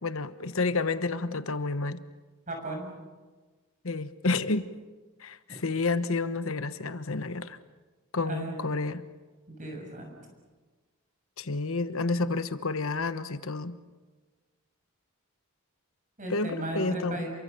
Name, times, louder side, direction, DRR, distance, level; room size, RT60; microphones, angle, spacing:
voice 1, 0.0-2.0 3.8-4.6 5.2-7.6 8.1-9.0 11.4-13.7 16.3-17.2, left 3 dB, 65° left, 12 dB, 1.2 m, -30 dB
voice 2, 2.5-2.9 8.3-8.6 9.5-10.2 16.2-17.3, right 1 dB, 35° right, 2 dB, 6.8 m, -35 dB
29.0 x 23.5 x 6.9 m, 1.3 s
head